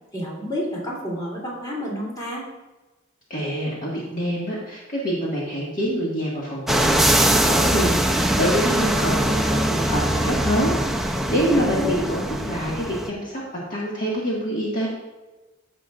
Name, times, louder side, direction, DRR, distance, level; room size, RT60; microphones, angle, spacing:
voice 1, 0.1-2.4 11.5-12.1, left 1 dB, 20° left, -5 dB, 3.0 m, -30 dB
voice 2, 3.3-13.4 13.7-14.9, equal, 40° left, -6 dB, 1.8 m, -26 dB
sound 1, 6.7-13.1, right 1 dB, ahead, 0.5 m, -22 dB
15.0 x 6.1 x 2.5 m, 1.1 s
head